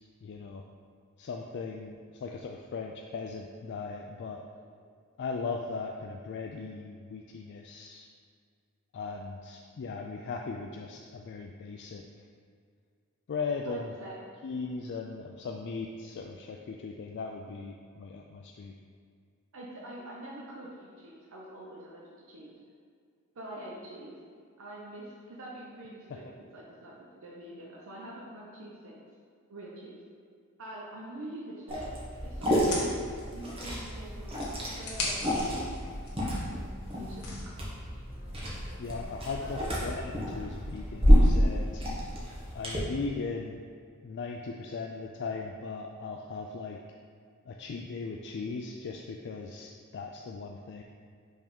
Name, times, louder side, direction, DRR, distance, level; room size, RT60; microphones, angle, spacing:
voice 1, 0.2-0.6 1.2-4.4 5.2-8.1 8.9-12.0 13.3-13.9 14.4-18.7 26.1-26.2 38.8-41.8 42.5-43.6 44.0-46.8 47.5-50.8, left 4 dB, 55° left, 1 dB, 0.3 m, -38 dB
voice 2, 13.7-14.2 19.5-22.6 23.4-24.2 24.6-29.0 29.5-30.0 30.6-31.9 32.2-33.0 33.3-35.7 36.9-37.6 39.4-39.7, right 1 dB, 65° right, -4 dB, 0.8 m, -45 dB
Liquid, 31.7-42.8, equal, 25° right, 1.2 m, -28 dB
sound 1, 32.4-34.0 34.3-37.5, left 2 dB, 70° left, 1.2 m, -39 dB
5.4 x 3.5 x 5.3 m, 2.2 s
head